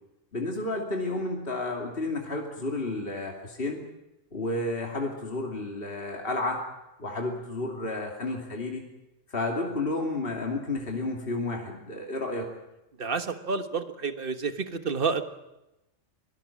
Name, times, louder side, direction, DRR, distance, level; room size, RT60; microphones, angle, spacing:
voice 1, 0.3-3.8 4.3-6.6 7.0-8.8 9.3-12.5, left 2 dB, 50° left, 0 dB, 3.0 m, -31 dB
voice 2, 13.0-15.2, right 5 dB, 45° right, 9 dB, 1.6 m, -29 dB
24.5 x 18.5 x 7.3 m, 0.93 s
omnidirectional pair, 1.3 m